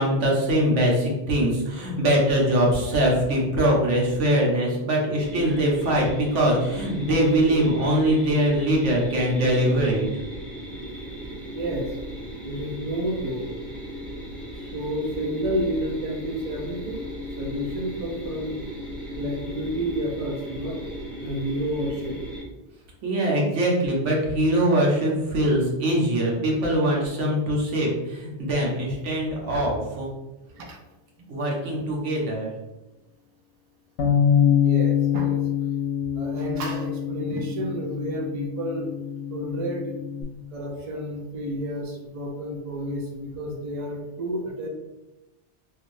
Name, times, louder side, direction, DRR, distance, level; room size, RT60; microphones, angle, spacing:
voice 1, 0.0-10.1 23.0-30.1 31.3-32.5, right 1 dB, 85° right, -2 dB, 1.2 m, -22 dB
sound 1, 5.2-22.4, equal, ahead, 0.6 m, -36 dB
voice 2, 11.3-11.9 12.4-13.5 14.7-17.0 17.4-18.6 19.2-20.9 21.2-22.2 30.5-30.8 34.6-35.4 36.2-38.9 39.3-40.0 40.5-44.7, equal, 45° right, 1 dB, 0.4 m, -30 dB
Bass guitar, 34.0-40.2, left 8 dB, 80° left, 0.9 m, -25 dB
3.2 x 2.8 x 2.6 m, 1.0 s
omnidirectional pair, 1.2 m